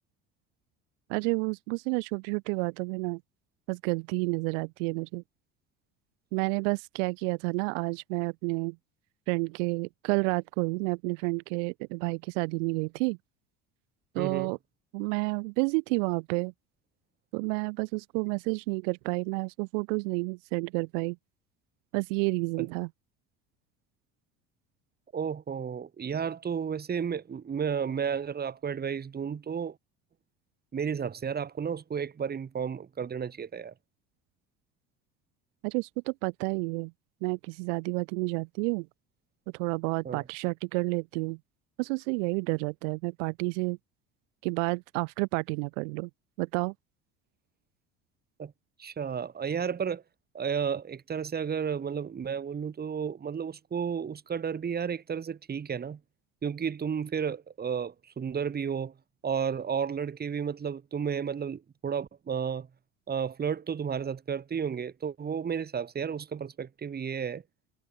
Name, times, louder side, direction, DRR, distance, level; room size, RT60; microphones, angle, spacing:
voice 1, 1.1-3.2 3.7-5.2 6.3-8.8 9.3-13.2 14.1-14.6 14.9-16.5 17.3-21.2 21.9-22.9 35.6-36.9 37.2-38.9 39.5-41.4 41.8-43.8 44.4-46.1 46.4-46.7, right 33 dB, 75° right, 0.6 m, -30 dB
voice 2, 14.2-14.5 22.6-22.7 25.1-29.8 30.7-33.7 40.0-40.2 48.4-48.5 48.8-50.0 50.3-56.0 56.4-58.9 59.2-62.7 63.1-67.4, right 7 dB, 25° right, 1.2 m, -32 dB
hypercardioid pair, 80°, 37 cm